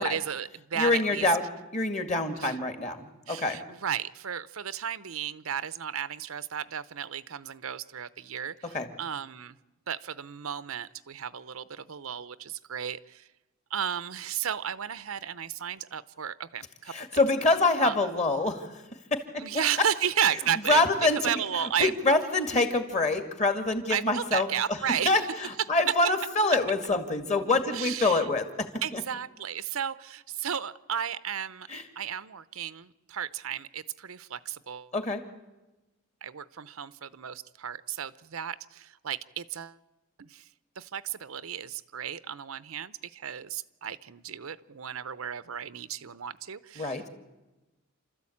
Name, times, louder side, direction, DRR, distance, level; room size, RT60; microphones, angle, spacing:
voice 1, 0.0-1.3 2.4-2.6 3.3-9.6 9.9-13.3 13.7-16.9 17.8-18.0 19.4-20.8 21.2-21.9 23.9-25.2 27.7-28.3 28.8-31.7 32.0-34.9 36.2-39.8 40.2-40.4 40.8-47.1, right 9 dB, 75° right, 15 dB, 0.7 m, -33 dB
voice 2, 0.7-1.4 1.7-3.6 8.7-8.9 16.9-18.8 19.1-19.4 20.7-21.2 21.5-24.8 25.1-28.7 28.9-29.0 31.7-31.8 34.9-35.2 46.8-47.0, left 2 dB, 30° left, 7 dB, 2.2 m, -26 dB
29.0 x 13.5 x 8.6 m, 1.1 s
head